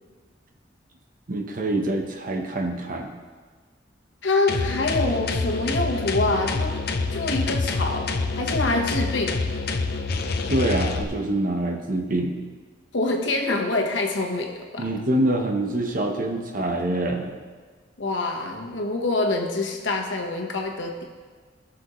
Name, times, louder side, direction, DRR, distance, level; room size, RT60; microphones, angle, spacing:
voice 1, 1.3-3.1 10.5-12.4 14.8-17.4, right 1 dB, 45° right, 3 dB, 1.0 m, -25 dB
voice 2, 4.2-6.8 7.1-8.1 8.4-9.4 12.9-14.9 18.0-21.0, left 2 dB, 80° left, 2 dB, 1.2 m, -25 dB
sound 1, 4.5-11.0, left 3 dB, 55° left, 0.6 m, -27 dB
16.5 x 6.3 x 3.1 m, 1.5 s
head